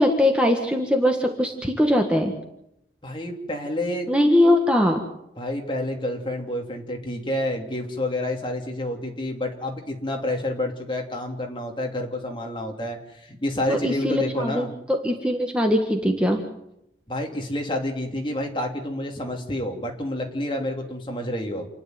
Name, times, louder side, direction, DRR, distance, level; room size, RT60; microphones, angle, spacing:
voice 1, 0.0-2.3 4.1-5.0 13.7-16.4, left 1 dB, 5° right, 2 dB, 1.6 m, -21 dB
voice 2, 3.0-4.1 5.4-14.7 17.1-21.7, left 1 dB, 25° left, 2 dB, 2.9 m, -29 dB
28.5 x 10.5 x 9.3 m, 0.81 s
head